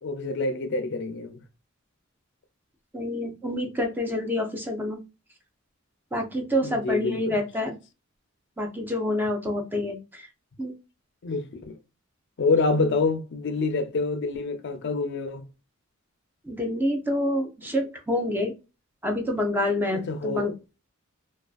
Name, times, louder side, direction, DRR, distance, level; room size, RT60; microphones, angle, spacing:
voice 1, 0.0-1.4 6.6-7.4 11.2-11.7 12.4-15.5 19.9-20.5, left 3 dB, 60° left, 0.5 m, -27 dB
voice 2, 2.9-5.0 6.1-7.8 8.6-10.3 10.6-10.7 16.4-18.5 19.0-20.5, left 1 dB, 10° right, 0.5 m, -27 dB
2.4 x 2.3 x 2.3 m
head